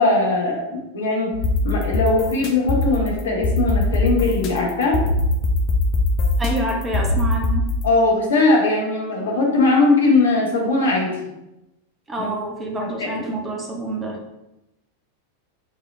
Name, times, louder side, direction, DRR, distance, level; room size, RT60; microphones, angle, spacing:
voice 1, 0.0-1.3 1.6-5.0 7.8-11.1 12.2-12.3 12.8-13.3, left 3 dB, 65° left, -2 dB, 1.3 m, -20 dB
sound 1, 1.3-7.8, left 2 dB, 40° left, 0.7 m, -21 dB
voice 2, 6.4-7.7 12.1-14.2, right 1 dB, 15° right, 1 dB, 1.0 m, -27 dB
5.0 x 3.5 x 2.8 m, 0.94 s
figure-of-eight pair, 90°, 0 cm